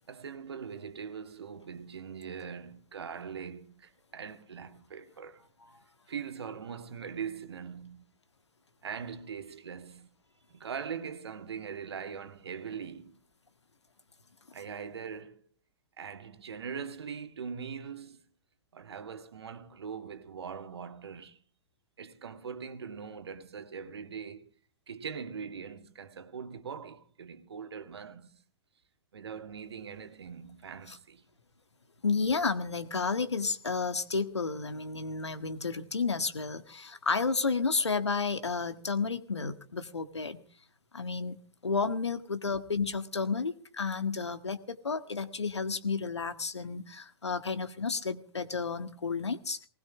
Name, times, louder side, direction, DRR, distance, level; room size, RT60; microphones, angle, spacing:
voice 1, 0.1-5.4 6.1-8.1 8.8-10.1 10.5-13.2 14.5-15.4 16.0-18.2 18.7-21.4 22.0-24.5 24.9-28.4 29.1-31.2, right 6 dB, 65° right, 2.1 m, -41 dB
voice 2, 32.0-40.4 40.9-49.6, left 4 dB, 80° left, 1.7 m, -31 dB
20.0 x 19.5 x 3.6 m
figure-of-eight pair, 105°, 14 cm